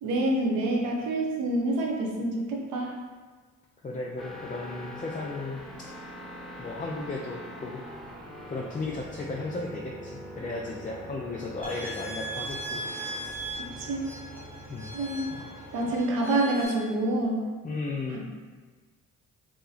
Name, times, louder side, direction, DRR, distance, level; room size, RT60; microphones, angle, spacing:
voice 1, 0.0-3.0 13.6-14.1 14.9-15.3 15.7-17.4, right 1 dB, 90° right, -1 dB, 0.7 m, -27 dB
voice 2, 3.8-5.6 6.6-7.8 8.5-12.8 14.7-14.9 15.3-15.5 17.6-18.3, left 3 dB, 25° left, -2 dB, 0.4 m, -35 dB
sound 1, 4.2-16.0, equal, ahead, 1.0 m, -43 dB
sound 2, 11.6-16.7, right 1 dB, 55° right, 1.0 m, -38 dB
2.8 x 2.7 x 3.9 m, 1.5 s
supercardioid pair, 65°, 33 cm